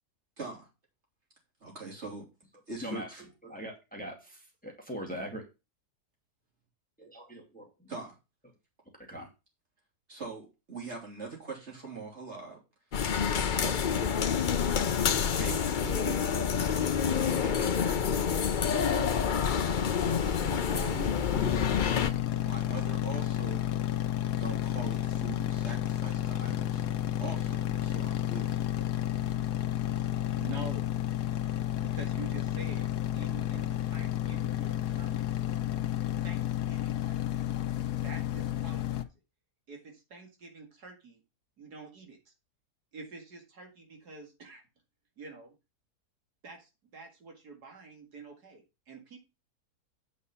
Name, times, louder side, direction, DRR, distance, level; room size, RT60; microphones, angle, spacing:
voice 1, 0.4-0.7 1.6-2.3 2.7-3.2 7.9-8.2 10.1-12.6 13.3-14.3 15.4-16.7 17.0-19.2 20.1-21.6 22.4-23.7 24.4-26.8 27.2-28.6, right 4 dB, 45° right, 3.4 m, -43 dB
voice 2, 3.4-5.4 7.0-7.9 9.1-9.3, equal, 5° left, 2.3 m, -41 dB
sound 1, 12.9-22.1, left 7 dB, 50° left, 0.5 m, -28 dB
sound 2, 21.3-39.0, left 12 dB, 85° left, 1.3 m, -31 dB
voice 3, 30.4-30.9 31.8-35.3 36.2-37.4 38.0-39.1 39.7-41.2 41.6-42.3 42.9-44.6 45.2-45.5 46.4-49.2, right 4 dB, 80° right, 2.6 m, -47 dB
8.6 x 5.4 x 5.6 m
omnidirectional pair, 1.7 m